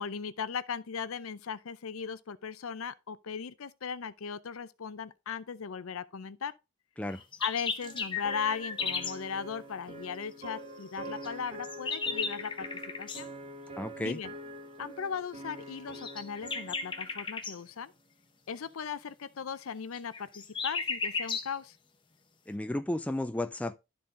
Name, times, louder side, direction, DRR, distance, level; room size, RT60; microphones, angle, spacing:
voice 1, 0.0-6.5 7.4-12.7 13.0-13.3 14.0-14.3 14.8-17.9 18.5-21.8, left 6 dB, 75° left, 0.5 m, -38 dB
sound 1, 7.1-9.2 11.2-13.2 15.9-17.6 19.9-21.5, left 5 dB, 20° left, 0.8 m, -35 dB
sound 2, 7.8-17.3, right 1 dB, 30° right, 0.7 m, -45 dB
voice 2, 13.8-14.2 22.5-23.9, left 1 dB, 5° left, 0.3 m, -33 dB
12.0 x 4.1 x 3.7 m
head